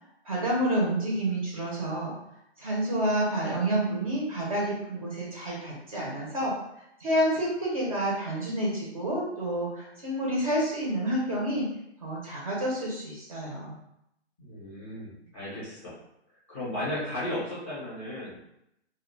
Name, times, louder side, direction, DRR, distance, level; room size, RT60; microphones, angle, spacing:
voice 1, 0.2-2.2 2.6-6.5 7.0-11.7 12.0-13.8, right 1 dB, 30° right, -5 dB, 0.5 m, -29 dB
voice 2, 14.4-15.9 16.5-18.4, left 1 dB, 15° left, -10 dB, 0.6 m, -35 dB
2.1 x 2.0 x 3.0 m, 0.80 s
hypercardioid pair, 155°, 35 cm